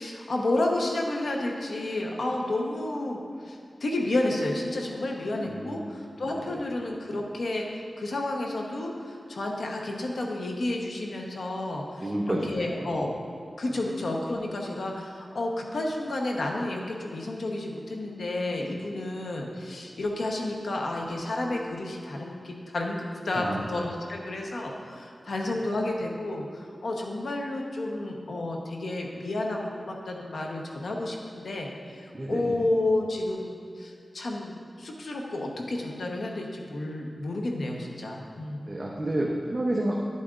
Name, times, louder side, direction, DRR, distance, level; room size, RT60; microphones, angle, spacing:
voice 1, 0.0-13.1 13.6-38.7, left 2 dB, 80° left, 0 dB, 0.9 m, -31 dB
voice 2, 5.5-6.0 6.5-6.6 12.0-12.5 12.8-12.9 23.3-23.7 25.5-25.6 32.1-32.6 38.7-40.0, right 1 dB, 30° right, -2 dB, 0.8 m, -30 dB
10.5 x 8.4 x 2.5 m, 2.2 s
wide cardioid pair, 80°, 0 cm